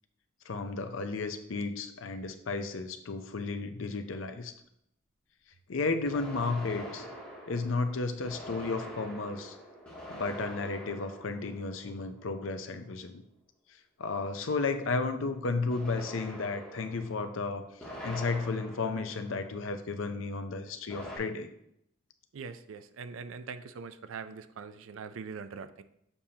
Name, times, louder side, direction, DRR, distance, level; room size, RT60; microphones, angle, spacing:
voice 1, 0.5-4.5 5.7-7.1 7.5-9.6 10.1-13.2 14.0-17.7 18.0-21.5, left 3 dB, 70° left, 8 dB, 0.6 m, -33 dB
sound 1, 6.1-12.6 15.7-19.9 20.9-21.2, equal, 5° left, 2.3 m, -45 dB
voice 2, 22.3-25.8, right 5 dB, 70° right, 12 dB, 0.4 m, -42 dB
6.8 x 5.5 x 2.8 m, 0.76 s
head